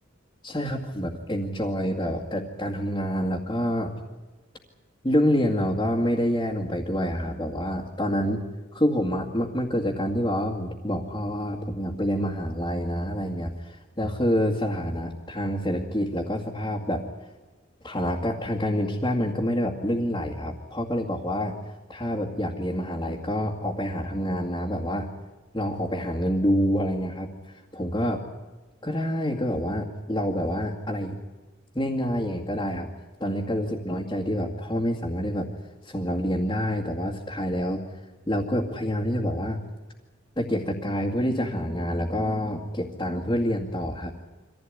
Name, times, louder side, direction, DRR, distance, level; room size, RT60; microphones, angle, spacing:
voice 1, 0.4-3.9 5.0-8.4 8.7-17.0 17.8-21.5 21.9-25.1 25.5-27.3 27.7-28.2 28.8-31.2 31.7-32.9 33.2-35.5 35.8-37.8 38.3-39.6 40.4-44.1, equal, 20° left, -6 dB, 2.2 m, -27 dB
24.5 x 15.5 x 9.8 m, 1.3 s
head